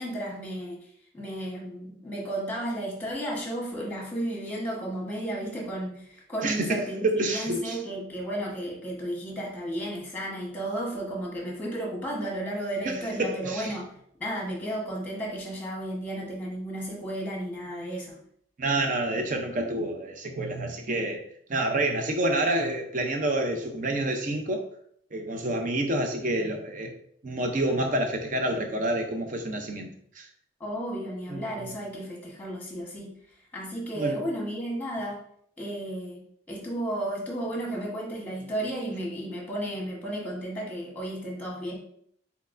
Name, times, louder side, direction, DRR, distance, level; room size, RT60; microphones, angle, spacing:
voice 1, 0.0-13.9 14.2-18.2 30.6-33.1 33.5-35.2 35.6-41.7, right 1 dB, 10° left, -2 dB, 1.2 m, -33 dB
voice 2, 6.4-7.8 12.8-13.7 18.6-21.2 21.5-24.6 25.1-26.9 27.2-29.9 30.2-30.3 31.3-31.7 33.9-34.2, right 1 dB, 40° right, 4 dB, 0.6 m, -28 dB
4.5 x 4.0 x 2.5 m, 0.66 s
head